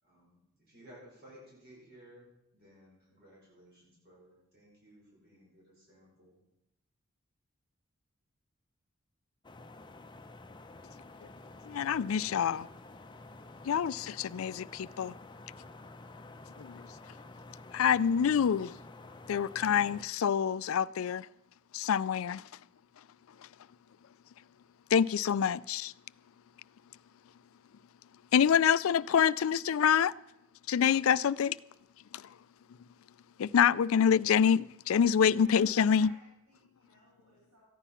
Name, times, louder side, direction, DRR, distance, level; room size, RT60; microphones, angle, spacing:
voice 1, 0.0-6.4, equal, 50° right, 5.5 m, -57 dB
sound 1, 9.4-20.0, left 2 dB, 20° left, 0.7 m, -50 dB
voice 2, 11.7-12.7 13.7-15.1 16.6-16.8 17.7-18.7 19.3-21.3 21.7-22.4 24.9-25.9 28.3-30.1 30.7-31.6 32.1-32.2 33.4-36.1, left 7 dB, 70° left, 0.4 m, -26 dB
voice 3, 35.9-37.7, equal, 80° right, 5.9 m, -58 dB
14.5 x 10.0 x 5.7 m
head